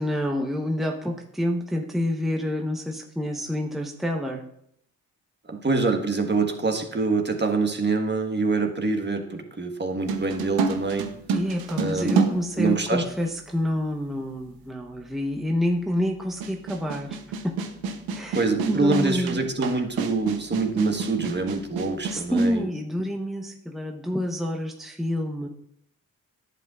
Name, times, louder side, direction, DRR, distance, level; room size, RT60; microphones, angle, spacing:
voice 1, 0.0-4.4 11.3-17.2 17.4-17.6 18.1-18.4 18.7-19.4 22.1-25.5, equal, ahead, 1 dB, 1.0 m, -28 dB
voice 2, 5.5-11.1 11.8-12.2 12.6-13.0 18.3-22.6, right 3 dB, 30° right, 4 dB, 1.4 m, -25 dB
sound 1, 10.1-13.3 14.2-14.3 16.4-22.6, right 5 dB, 80° right, 0.9 m, -29 dB
10.5 x 7.5 x 2.5 m, 0.72 s
supercardioid pair, 45°, 36 cm